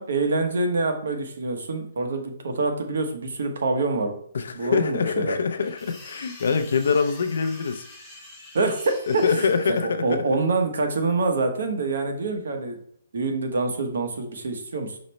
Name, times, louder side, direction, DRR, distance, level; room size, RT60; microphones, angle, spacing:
voice 1, 0.0-4.1 4.5-5.3 8.5-9.5 10.0-12.8 13.1-15.0, right 3 dB, 65° right, 5 dB, 0.9 m, -26 dB
voice 2, 4.3-7.9 9.1-10.2, left 5 dB, 65° left, 8 dB, 0.4 m, -24 dB
sound 1, 5.5-9.8, left 2 dB, 5° left, 0.7 m, -45 dB
5.0 x 2.0 x 4.2 m, 0.64 s
hypercardioid pair, 170°, 0 cm